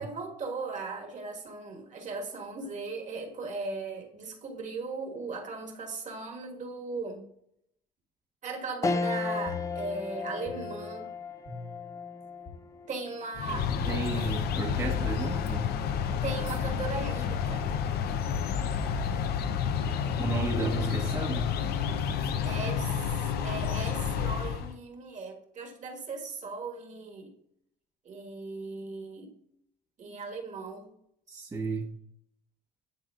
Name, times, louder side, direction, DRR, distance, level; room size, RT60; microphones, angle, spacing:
voice 1, 0.0-7.2 8.4-11.1 12.9-13.7 16.2-17.7 22.4-23.0 23.4-27.3 28.0-29.4 30.0-30.9, right 3 dB, 45° right, 2 dB, 1.6 m, -38 dB
sound 1, 8.8-18.4 18.9-19.0 20.3-20.8, left 4 dB, 20° left, 0.4 m, -38 dB
sound 2, 9.5-10.2 10.5-11.1 11.5-12.0 12.5-12.6 13.5-13.6 14.5-14.6 15.5-15.6 16.5-16.6, left 5 dB, 50° left, 1.4 m, -44 dB
sound 3, 13.4-24.7, left 7 dB, 70° left, 0.6 m, -30 dB
voice 2, 13.7-15.7 20.1-21.5 31.3-31.9, right 3 dB, 20° right, -2 dB, 0.9 m, -33 dB
10.5 x 4.0 x 2.4 m, 0.75 s
cardioid pair, 110°, 17 cm